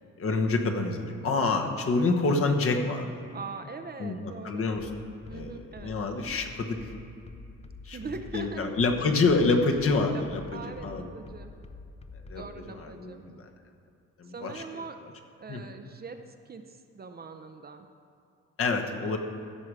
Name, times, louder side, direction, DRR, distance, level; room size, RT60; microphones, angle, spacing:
voice 1, 0.2-3.2 4.0-4.2 4.4-4.9 5.3-5.5 5.8-6.9 7.8-8.0 8.3-11.1 12.3-12.4 12.7-13.2 14.2-14.6 15.5-15.6 18.6-19.2, left 3 dB, 45° left, 3 dB, 1.2 m, -27 dB
voice 2, 3.3-4.7 5.3-6.0 7.9-8.6 10.1-10.2 10.5-11.5 12.3-13.2 14.2-15.0 15.4-17.9 18.7-19.2, right 4 dB, 30° right, 7 dB, 0.6 m, -42 dB
sound 1, 4.8-12.6, left 4 dB, 20° left, 0.6 m, -46 dB
15.5 x 6.1 x 4.9 m, 2.6 s
cardioid pair, 90°, 30 cm